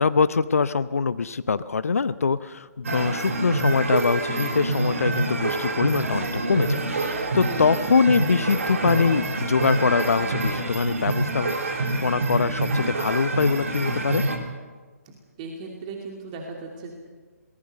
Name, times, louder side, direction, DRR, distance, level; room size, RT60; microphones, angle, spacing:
voice 1, 0.0-14.2, left 5 dB, 60° left, 15 dB, 0.8 m, -23 dB
sound 1, 2.8-14.4, right 2 dB, 60° right, 3.2 m, -26 dB
voice 2, 7.5-7.9 15.1-16.9, right 3 dB, 25° right, 0 dB, 2.7 m, -37 dB
23.0 x 19.5 x 6.6 m, 1.4 s
figure-of-eight pair, 135°, 9 cm